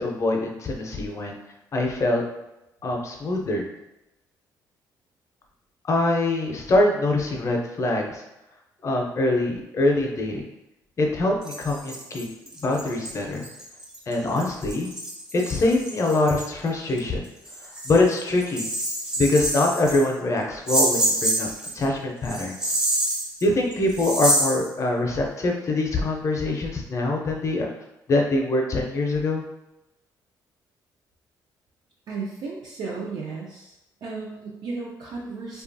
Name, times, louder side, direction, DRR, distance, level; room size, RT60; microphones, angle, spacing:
voice 1, 0.0-1.4 1.7-2.2 2.8-3.6 5.9-8.2 8.8-10.4 11.0-12.3 12.6-13.4 14.1-14.9 15.3-17.2 17.8-18.6 19.2-21.5 21.7-22.7 23.4-27.7 28.1-29.4, left 2 dB, 40° left, 1 dB, 0.5 m, -24 dB
sound 1, 11.4-16.5 17.0-17.1 17.5-20.1 20.7-21.8 22.3-24.7, right 1 dB, 10° right, 0.5 m, -27 dB
voice 2, 32.1-33.7 34.0-35.6, right 4 dB, 65° right, -3 dB, 0.4 m, -34 dB
2.8 x 2.3 x 2.6 m, 0.91 s
cardioid pair, 105°, 8 cm